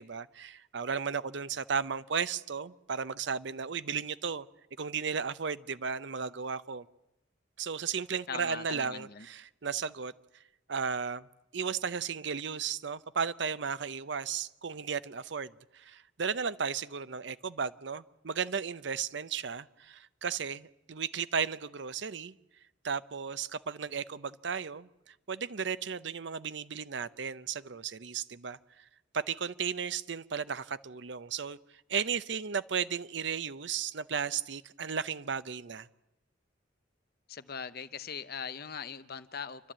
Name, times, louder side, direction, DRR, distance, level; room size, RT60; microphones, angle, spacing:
voice 1, 0.0-4.5 4.8-6.9 7.6-10.1 10.7-11.3 11.5-22.3 22.8-28.9 29.1-31.6 31.9-35.9, right 6 dB, 65° right, 0.7 m, -35 dB
voice 2, 8.3-9.3 37.3-39.7, left 6 dB, 55° left, 0.9 m, -40 dB
28.0 x 12.0 x 8.8 m
head